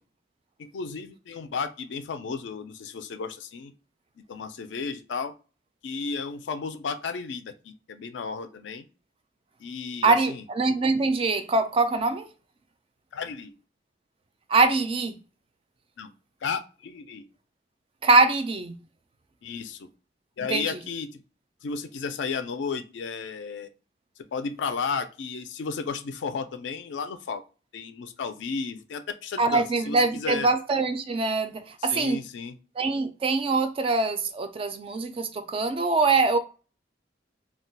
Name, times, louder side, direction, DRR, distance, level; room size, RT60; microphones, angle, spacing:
voice 1, 0.6-3.7 4.3-5.4 5.8-8.9 9.6-10.4 13.1-13.5 16.0-16.1 16.4-17.3 19.4-19.9 20.4-21.2 21.6-23.7 24.3-27.4 27.7-30.5 31.8-32.6, left 5 dB, 70° left, 0.4 m, -33 dB
voice 2, 10.0-12.3 14.5-15.1 18.0-18.7 20.4-20.7 29.4-32.2 32.8-36.4, right 3 dB, 30° right, 0.3 m, -23 dB
2.3 x 2.1 x 3.8 m
head